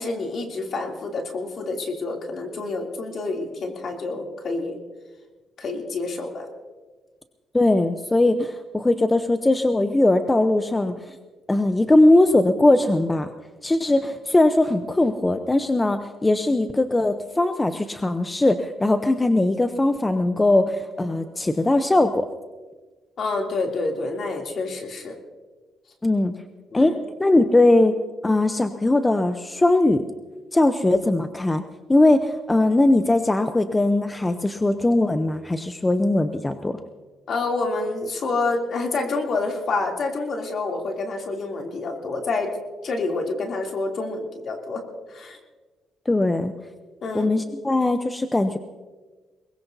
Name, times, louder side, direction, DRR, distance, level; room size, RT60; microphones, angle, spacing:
voice 1, 0.0-4.8 5.6-6.5 23.2-25.2 26.7-27.0 37.3-42.5 42.8-44.8 45.1-45.4 47.0-47.3, left 3 dB, 55° left, 1 dB, 3.0 m, -28 dB
voice 2, 7.5-11.2 11.5-13.3 13.6-22.3 26.0-26.3 26.7-26.9 27.2-27.9 28.2-30.0 30.5-31.6 31.9-36.8 46.1-46.5 47.1-48.6, left 2 dB, 15° left, 8 dB, 0.8 m, -20 dB
22.5 x 20.5 x 2.8 m, 1.3 s
cardioid pair, 90°, 0 cm